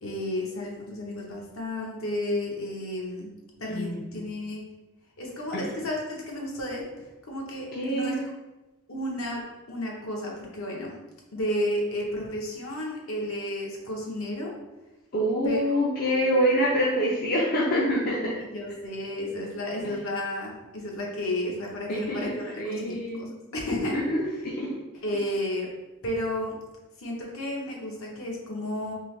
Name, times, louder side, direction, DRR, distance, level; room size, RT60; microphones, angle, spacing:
voice 1, 0.0-3.3 3.6-4.6 5.2-6.8 7.2-8.2 8.9-10.9 11.3-14.5 15.4-15.6 16.0-16.4 18.2-24.0 25.0-25.7 26.0-26.6 27.0-28.9, left 1 dB, 60° left, -2 dB, 0.9 m, -32 dB
voice 2, 3.7-4.0 5.5-5.6 7.7-8.2 15.1-18.4 19.8-19.9 21.9-23.3 23.9-24.7, equal, 40° left, -5 dB, 0.5 m, -26 dB
3.7 x 2.8 x 3.1 m, 1.1 s
head